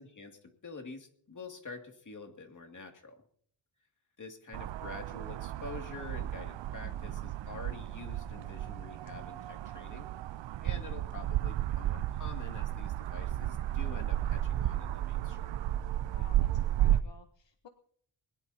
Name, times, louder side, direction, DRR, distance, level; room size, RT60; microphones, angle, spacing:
voice 1, 0.0-3.2 4.2-10.1 10.6-15.6, left 3 dB, 40° left, 3 dB, 2.5 m, -47 dB
sound 1, 4.5-17.0, right 13 dB, 65° right, 0.5 m, -33 dB
voice 2, 6.8-7.3 16.1-17.7, left 8 dB, 60° left, 7 dB, 1.2 m, -55 dB
21.0 x 21.0 x 2.8 m, 0.62 s
wide cardioid pair, 135°, 48 cm